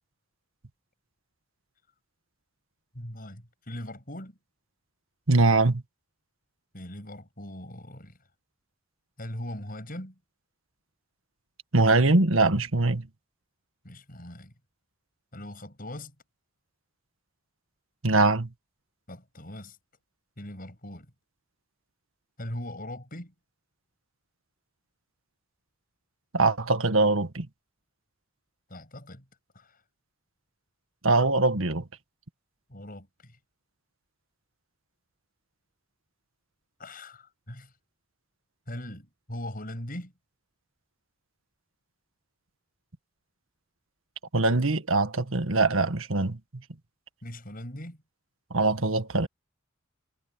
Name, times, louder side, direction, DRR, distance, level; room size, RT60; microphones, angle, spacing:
voice 1, 2.9-4.4 6.7-8.2 9.2-10.2 13.8-14.5 15.3-16.1 19.1-19.8 20.4-21.1 22.4-23.3 28.7-29.3 29.5-29.8 32.7-33.4 36.8-37.7 38.7-40.1 47.2-48.0, left 1 dB, 45° left, 7.3 m, -40 dB
voice 2, 5.3-5.8 11.7-13.1 18.0-18.5 26.3-27.5 31.0-31.8 44.3-46.4 48.5-49.3, right 3 dB, 80° right, 1.7 m, -22 dB
head